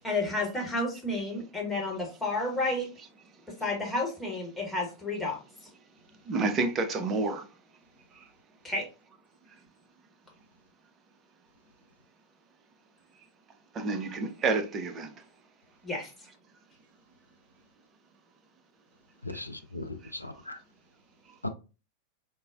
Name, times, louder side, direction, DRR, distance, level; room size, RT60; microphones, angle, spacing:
voice 1, 0.0-2.9 3.5-5.4 8.6-8.9 15.8-16.1, left 2 dB, 5° left, 1.0 m, -31 dB
voice 2, 6.2-7.5 8.1-8.3 9.5-9.6 13.7-15.3 19.3-19.4 20.0-20.1 21.3-21.4, right 3 dB, 25° right, 0.5 m, -30 dB
voice 3, 19.2-20.6 21.4-21.5, left 2 dB, 85° left, 0.3 m, -38 dB
3.7 x 2.0 x 2.3 m
figure-of-eight pair, 90°, 0 cm